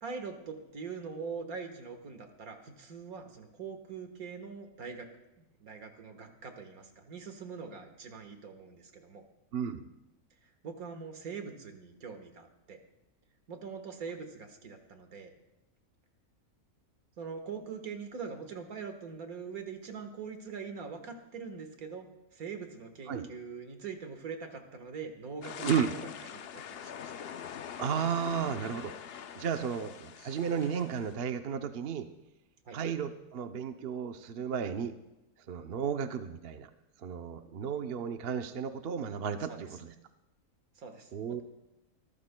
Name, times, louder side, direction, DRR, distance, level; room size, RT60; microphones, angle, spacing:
voice 1, 0.0-5.1 5.6-9.2 10.6-12.8 13.5-15.3 17.2-26.0 26.3-27.1 32.7-32.8 39.5-39.6 40.8-41.4, right 5 dB, 75° right, 6 dB, 1.9 m, -43 dB
voice 2, 9.5-9.9 23.1-23.3 25.6-25.9 27.8-28.9 29.3-32.1 32.7-34.9 35.5-36.7 37.0-39.9 41.1-41.4, right 7 dB, 50° right, 8 dB, 0.8 m, -33 dB
sound 1, 25.4-31.2, left 8 dB, 60° left, 0.6 m, -43 dB
25.0 x 13.5 x 2.2 m, 0.95 s
omnidirectional pair, 1.5 m